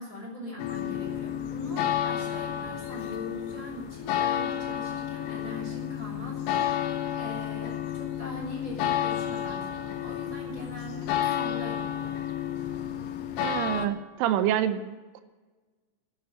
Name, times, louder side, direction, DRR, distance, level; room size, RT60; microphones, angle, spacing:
voice 1, 0.0-12.2, left 1 dB, 20° left, -3 dB, 4.3 m, -41 dB
sound 1, 0.6-13.9, left 10 dB, 80° left, 3.3 m, -31 dB
voice 2, 13.4-15.2, right 10 dB, 85° right, 11 dB, 3.3 m, -27 dB
11.0 x 10.0 x 9.1 m, 1.3 s
omnidirectional pair, 5.6 m